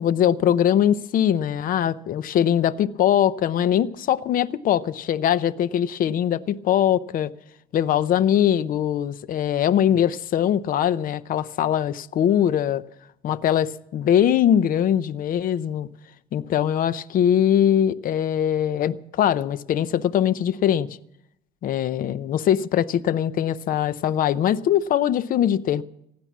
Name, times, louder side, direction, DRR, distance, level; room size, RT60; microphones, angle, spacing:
voice 1, 0.0-7.3 7.7-12.8 13.2-15.9 16.3-20.9 21.6-25.8, left 10 dB, 55° left, 0.6 m, -21 dB
16.0 x 10.5 x 7.3 m
cardioid pair, 110°, 17 cm